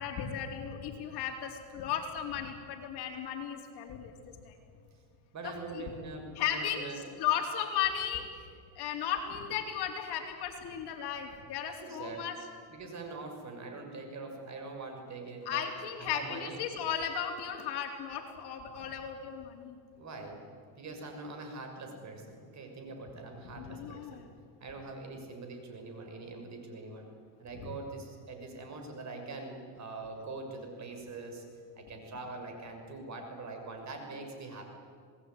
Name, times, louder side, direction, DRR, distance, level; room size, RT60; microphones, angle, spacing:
voice 1, 0.0-4.1 4.4-4.5 5.4-5.8 6.4-8.5 8.8-12.4 15.5-19.8 23.6-24.3 27.5-27.7, left 9 dB, 55° left, 3 dB, 4.1 m, -35 dB
voice 2, 5.3-7.1 11.8-12.3 12.7-15.6 16.0-16.6 19.9-20.5 20.8-24.2 24.6-27.1 27.4-31.4 31.8-34.6, right 3 dB, 35° right, 4 dB, 6.4 m, -43 dB
26.5 x 19.5 x 9.5 m, 2.2 s
supercardioid pair, 110°, 48 cm